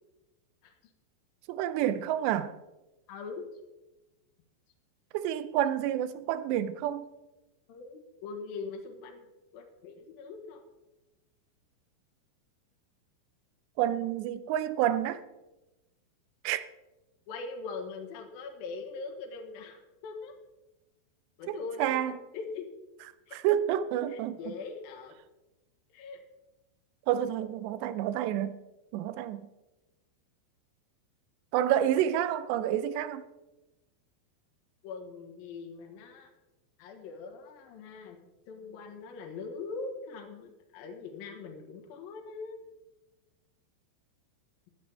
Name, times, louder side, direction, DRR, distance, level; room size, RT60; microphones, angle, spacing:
voice 1, 1.5-2.5 5.1-7.1 13.8-15.2 16.4-16.6 21.5-22.2 23.3-24.4 27.1-28.6 28.9-29.4 31.5-33.2, right 11 dB, 80° right, 2.6 m, -29 dB
voice 2, 3.1-3.5 7.7-9.3 9.5-10.6 17.3-20.3 21.4-22.0 22.3-22.7 23.3-23.4 24.1-25.2 25.9-26.2 34.8-36.3 36.8-38.2 38.5-42.7, left 4 dB, 65° left, 2.7 m, -41 dB
15.5 x 11.5 x 3.4 m
omnidirectional pair, 5.3 m